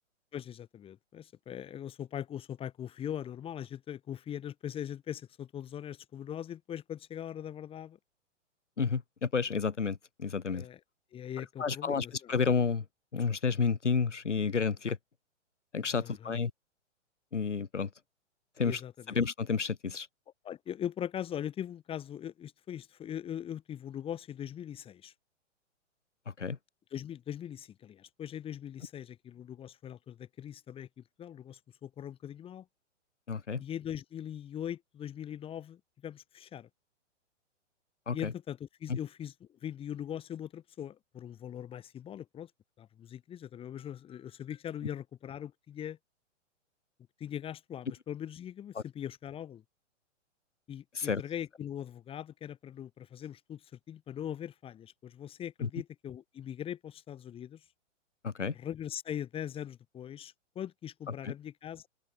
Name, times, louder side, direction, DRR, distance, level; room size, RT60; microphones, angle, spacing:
voice 1, 0.3-8.0 10.5-10.8 11.1-12.3 15.9-16.4 18.6-19.2 20.4-25.1 26.9-32.6 33.6-36.7 38.1-42.5 42.8-46.0 47.2-49.6 50.7-57.6 58.5-61.9, left 10 dB, 15° left, 1.7 m, -41 dB
voice 2, 8.8-10.7 11.6-12.8 13.1-15.0 15.7-16.5 17.3-17.9 18.6-18.8 19.1-20.1 26.4-26.6 33.3-33.6 38.1-38.3 38.9-39.0 50.9-51.2 55.6-55.7 58.2-58.5 61.2-61.3, left 5 dB, 70° left, 3.0 m, -30 dB
open air
figure-of-eight pair, 115°, 37 cm